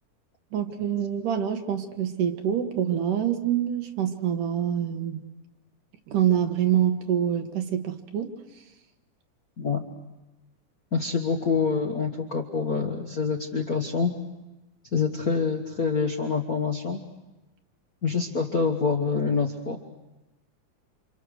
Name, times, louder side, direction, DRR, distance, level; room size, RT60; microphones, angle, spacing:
voice 1, 0.5-5.2 6.1-8.3, right 9 dB, 85° right, 5 dB, 3.2 m, -26 dB
voice 2, 10.9-14.1 14.9-17.0 18.0-19.8, left 5 dB, 50° left, 2 dB, 1.0 m, -26 dB
28.5 x 27.0 x 6.4 m, 1.1 s
omnidirectional pair, 3.6 m